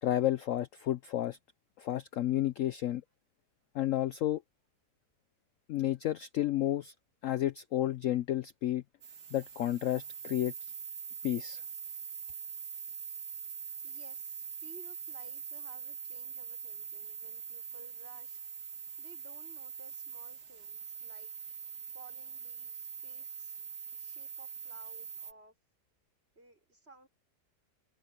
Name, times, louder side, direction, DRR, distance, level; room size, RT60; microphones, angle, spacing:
voice 1, 0.0-1.4 1.8-3.0 3.7-4.4 5.7-6.9 7.2-8.8 9.3-10.5 11.2-11.6, left 13 dB, 65° left, 0.8 m, -31 dB
sound 1, 9.0-25.3, right 7 dB, 65° right, 2.4 m, -43 dB
voice 2, 13.8-18.4 19.0-21.6 21.9-23.6 23.9-25.5 26.4-27.1, right 2 dB, 35° right, 5.7 m, -57 dB
omnidirectional pair, 1.8 m